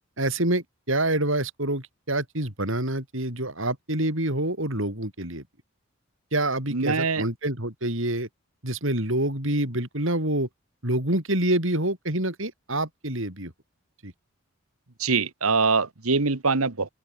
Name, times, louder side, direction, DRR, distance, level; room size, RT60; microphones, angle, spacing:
voice 1, 0.2-5.4 6.3-8.3 8.6-10.5 10.8-13.5 14.0-14.1, right 1 dB, 65° right, 6.3 m, -27 dB
voice 2, 6.7-7.2 15.0-16.9, right 4 dB, 85° right, 1.5 m, -23 dB
open air
head